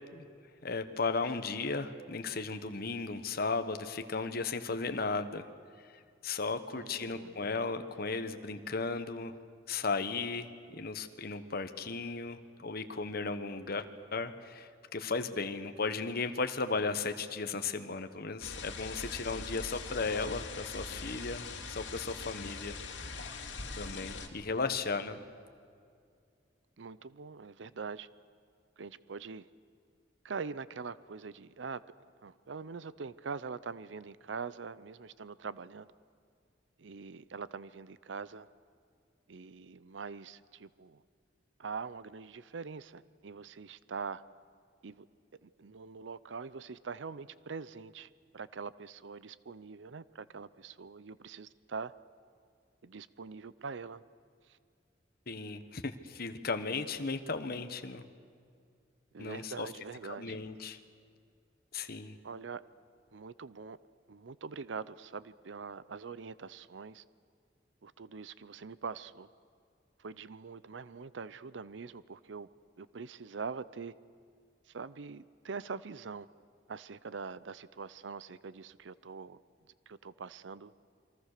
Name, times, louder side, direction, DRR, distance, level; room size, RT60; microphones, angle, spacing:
voice 1, 0.6-5.5 6.2-9.4 9.7-22.8 23.8-25.2 55.3-58.0 59.2-59.7 60.0-60.8 61.7-62.2, left 4 dB, 55° left, 1.2 m, -35 dB
voice 2, 6.7-7.4 26.8-28.1 28.8-29.5 30.2-31.8 32.2-35.9 36.8-38.5 39.3-41.0 41.6-44.2 44.8-45.0 45.4-51.9 52.8-54.0 54.5-54.6 59.1-60.4 62.2-62.6 63.1-63.8 64.1-67.0 67.8-69.3 70.0-72.5 72.8-73.9 74.7-76.3 76.7-79.4 79.9-80.7, right 5 dB, 80° right, 0.6 m, -43 dB
sound 1, 18.4-24.3, left 4 dB, 80° left, 2.4 m, -42 dB
28.0 x 23.5 x 6.7 m
head